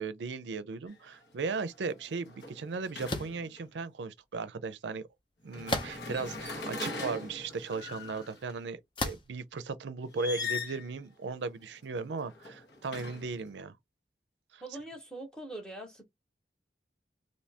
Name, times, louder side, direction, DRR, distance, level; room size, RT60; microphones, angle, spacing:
voice 1, 0.0-5.0 5.4-13.7 14.5-14.6, right 4 dB, 90° right, 0.5 m, -37 dB
sound 1, 0.9-1.1 1.5-3.6 5.5-8.5 10.1-10.9 12.1-13.5, left 4 dB, 85° left, 1.2 m, -40 dB
sound 2, 3.1-3.4 5.7-6.2 6.9-7.0 9.0-9.4, left 2 dB, 30° left, 0.6 m, -33 dB
voice 2, 14.6-16.1, right 1 dB, 5° left, 0.9 m, -43 dB
2.8 x 2.7 x 3.3 m
head